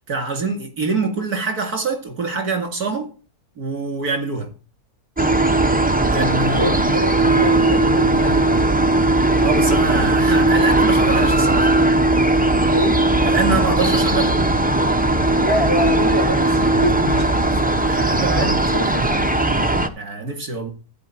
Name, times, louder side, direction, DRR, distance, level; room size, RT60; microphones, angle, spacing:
voice 1, 0.1-3.1 3.6-4.5 6.1-6.7 9.4-11.7 13.2-14.4 17.8-18.6 19.9-20.7, right 4 dB, 80° right, 2.9 m, -24 dB
sound 1, 5.2-19.9, right 2 dB, 10° right, 0.5 m, -18 dB
voice 2, 6.5-8.9 12.7-13.0 15.4-19.3, equal, 15° left, 3.0 m, -26 dB
14.0 x 4.9 x 7.4 m
omnidirectional pair, 1.6 m